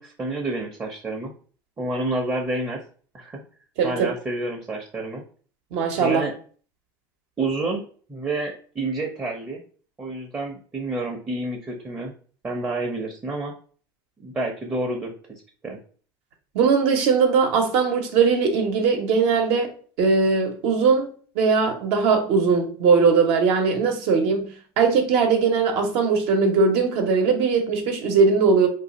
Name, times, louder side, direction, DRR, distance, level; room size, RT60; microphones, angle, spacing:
voice 1, 0.0-1.3 1.8-2.8 3.1-3.4 3.8-5.2 6.0-6.3 7.4-7.8 8.1-9.6 10.0-12.1 12.4-13.5 14.2-15.8, right 2 dB, 20° right, 0.7 m, -29 dB
voice 2, 3.8-4.1 5.7-6.3 16.5-19.7 20.0-21.1 21.3-24.5 24.8-28.7, right 5 dB, 60° right, 0.8 m, -20 dB
2.6 x 2.3 x 4.0 m
supercardioid pair, 95°, 11 cm